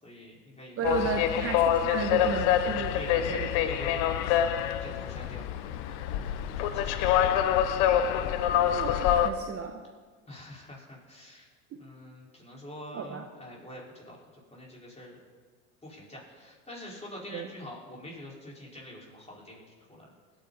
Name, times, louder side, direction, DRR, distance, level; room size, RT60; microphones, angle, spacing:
voice 1, 0.0-1.6 2.9-4.4 4.8-5.4 5.8-7.5 10.3-11.5 11.8-14.2 14.5-15.2 15.8-19.6 19.9-20.1, left 1 dB, 15° left, -4 dB, 4.7 m, -45 dB
sound 1, 0.8-9.3, left 10 dB, 70° left, 0.9 m, -26 dB
voice 2, 0.8-2.9 3.3-3.5 8.7-9.8 12.9-13.2 17.3-17.5, right 6 dB, 40° right, 5 dB, 1.1 m, -34 dB
19.5 x 9.1 x 4.1 m, 1.5 s
hypercardioid pair, 85°, 37 cm